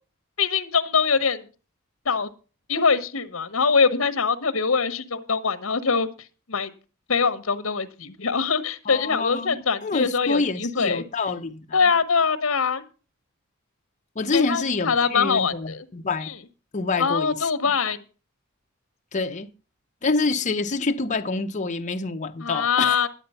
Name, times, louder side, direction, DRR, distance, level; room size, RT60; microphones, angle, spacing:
voice 1, 0.4-1.5 2.0-2.3 2.7-6.1 6.5-6.7 7.1-11.0 11.7-12.8 14.3-15.8 16.2-16.4 17.0-18.0 22.4-23.1, left 5 dB, 70° left, 1.0 m, -23 dB
voice 2, 8.9-11.8 14.2-16.3 16.7-17.4 19.1-19.5 20.0-23.0, left 3 dB, 35° left, 0.7 m, -27 dB
11.0 x 7.8 x 5.5 m
head